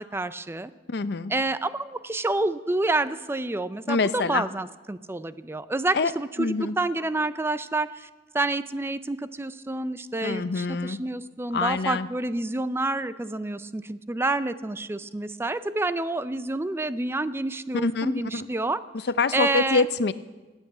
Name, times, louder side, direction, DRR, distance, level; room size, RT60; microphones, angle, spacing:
voice 1, 0.0-0.7 1.3-8.1 8.3-18.8 19.3-19.9, right 2 dB, 15° right, 13 dB, 0.4 m, -28 dB
voice 2, 0.9-1.3 3.9-4.4 5.9-6.1 6.4-6.7 10.2-11.0 11.5-12.1 17.7-18.5 19.1-20.1, left 4 dB, 65° left, 14 dB, 0.6 m, -25 dB
16.0 x 9.1 x 8.4 m, 1.3 s
head